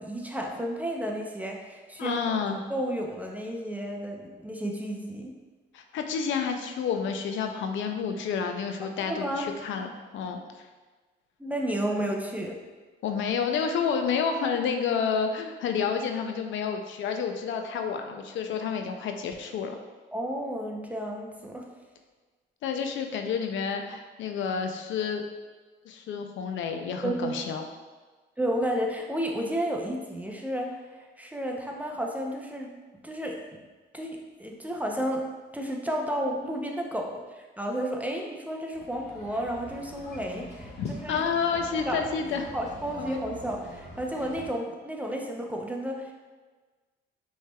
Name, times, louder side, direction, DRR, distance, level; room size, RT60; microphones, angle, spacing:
voice 1, 0.0-2.4 2.7-5.3 8.8-9.5 11.4-12.5 20.1-21.6 27.0-27.3 28.4-30.8 31.2-32.7 33.0-33.4 33.9-35.3 35.5-41.2 41.9-42.1 42.5-46.1, right 1 dB, 5° right, 1 dB, 0.6 m, -32 dB
voice 2, 2.0-2.6 5.7-10.7 13.0-19.7 22.6-25.2 25.9-27.6 40.8-42.5 43.1-43.2, left 6 dB, 75° left, 5 dB, 0.5 m, -30 dB
sound 1, 38.7-44.5, equal, 30° left, 1.5 m, -44 dB
5.5 x 3.2 x 2.3 m, 1.4 s
cardioid pair, 90°, 20 cm